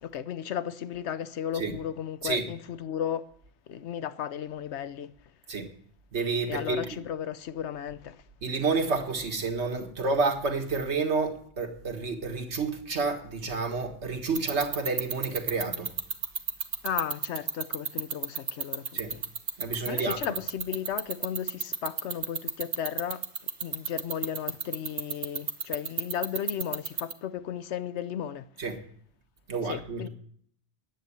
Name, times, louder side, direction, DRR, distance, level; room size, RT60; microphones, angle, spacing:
voice 1, 0.0-3.3 3.7-5.1 6.5-8.2 16.8-19.2 19.9-23.3 23.6-28.5 29.6-30.1, left 9 dB, 85° left, 1.0 m, -34 dB
voice 2, 6.1-6.9 8.4-15.9 18.9-19.1 19.6-20.2 28.6-28.8 29.5-30.1, right 4 dB, 85° right, 1.9 m, -29 dB
sound 1, 14.2-27.1, right 6 dB, 55° right, 1.1 m, -29 dB
10.0 x 8.0 x 9.8 m
omnidirectional pair, 1.1 m